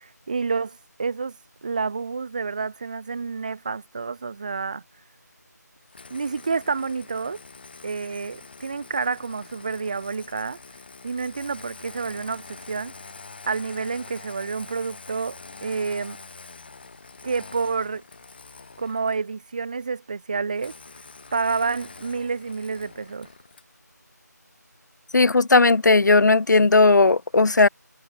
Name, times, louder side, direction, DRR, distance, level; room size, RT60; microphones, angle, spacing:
voice 1, 0.0-1.3 1.6-4.8 6.1-7.4 7.8-10.6 11.0-12.9 13.5-16.2 17.2-18.0 18.8-20.7 21.3-23.3, right 4 dB, 25° right, 1.2 m, -29 dB
Engine starting, 5.9-19.3 20.6-23.8, left 4 dB, 30° left, 3.0 m, -45 dB
voice 2, 25.1-27.7, left 3 dB, 80° left, 0.3 m, -16 dB
figure-of-eight pair, 165°, 10 cm